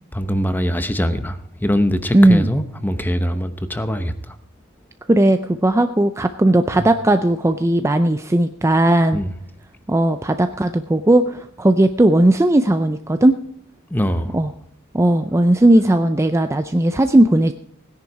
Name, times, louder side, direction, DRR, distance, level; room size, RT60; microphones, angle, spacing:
voice 1, 0.1-4.1 6.8-6.9 9.1-9.3 13.9-14.4, equal, 10° left, 0.9 m, -22 dB
voice 2, 2.1-2.5 5.1-9.2 9.9-13.4 14.3-14.5 14.9-17.5, right 1 dB, 15° right, 0.5 m, -16 dB
17.0 x 10.5 x 4.8 m
head